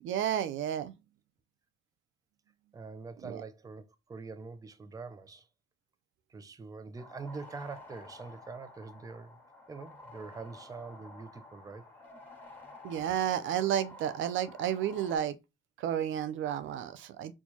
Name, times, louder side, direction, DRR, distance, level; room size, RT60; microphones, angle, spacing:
voice 1, 0.0-0.9 3.2-3.4 12.8-15.4 15.8-17.3, right 10 dB, 75° right, 0.5 m, -31 dB
voice 2, 2.7-5.5 6.3-9.4 9.7-11.9, right 4 dB, 20° right, 0.4 m, -44 dB
sound 1, 7.0-15.2, left 2 dB, 10° left, 1.4 m, -51 dB
4.4 x 2.2 x 2.8 m
cardioid pair, 90°, 20 cm